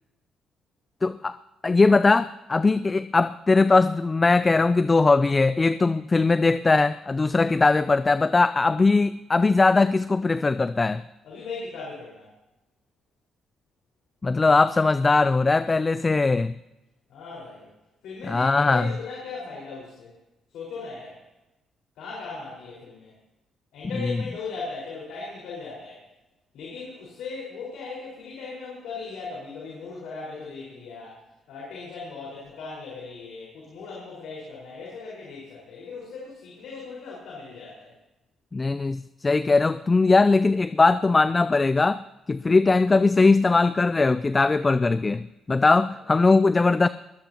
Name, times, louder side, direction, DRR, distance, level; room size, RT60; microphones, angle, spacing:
voice 1, 1.0-1.4 1.6-11.0 14.2-16.5 18.3-18.9 38.5-46.9, left 3 dB, 25° left, 14 dB, 0.4 m, -20 dB
voice 2, 11.2-12.3 17.1-17.7 18.0-20.1 20.5-21.2 22.0-23.1 23.7-26.0 26.5-31.2 31.5-37.9, left 4 dB, 85° left, -5 dB, 4.8 m, -38 dB
22.5 x 16.0 x 2.9 m, 1.0 s
cardioid pair, 90°, 0 cm